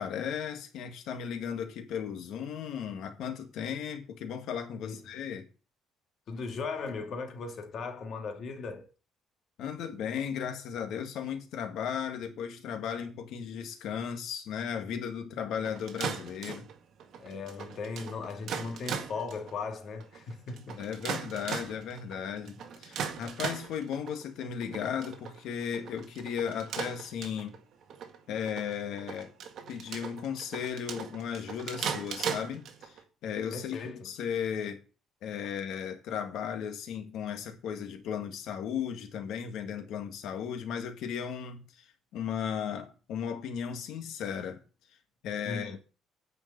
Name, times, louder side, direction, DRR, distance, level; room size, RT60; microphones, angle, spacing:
voice 1, 0.0-5.5 9.6-16.7 20.8-27.6 28.3-29.3 29.7-34.8 35.2-41.6 42.1-44.6 45.2-45.8, left 8 dB, 65° left, 1.9 m, -36 dB
voice 2, 6.3-8.9 17.2-20.8 33.5-34.1 45.5-45.8, left 4 dB, 40° left, 2.0 m, -38 dB
sound 1, 15.5-33.0, right 7 dB, 50° right, 1.8 m, -39 dB
9.8 x 5.2 x 8.2 m
cardioid pair, 175°, 0 cm